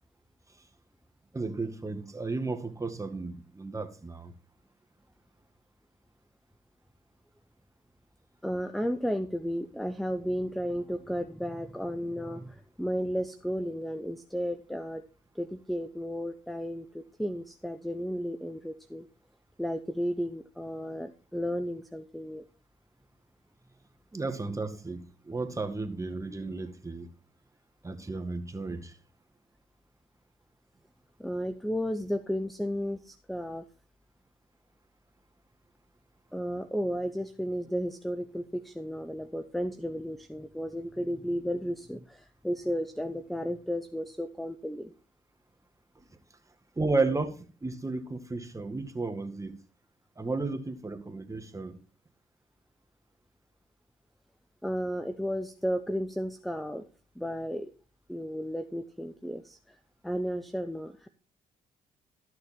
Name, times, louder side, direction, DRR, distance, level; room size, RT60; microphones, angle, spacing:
voice 1, 1.3-4.3 24.1-27.1 27.8-29.0 46.0-46.1 46.8-49.6 50.2-51.8, right 3 dB, 20° right, 1.9 m, -33 dB
voice 2, 8.4-15.0 15.3-19.1 19.6-22.4 31.2-33.6 36.3-44.9 54.6-56.8 57.2-57.7 58.1-59.8 60.0-61.1, equal, ahead, 0.8 m, -33 dB
13.0 x 6.6 x 4.5 m
supercardioid pair, 65°, 16 cm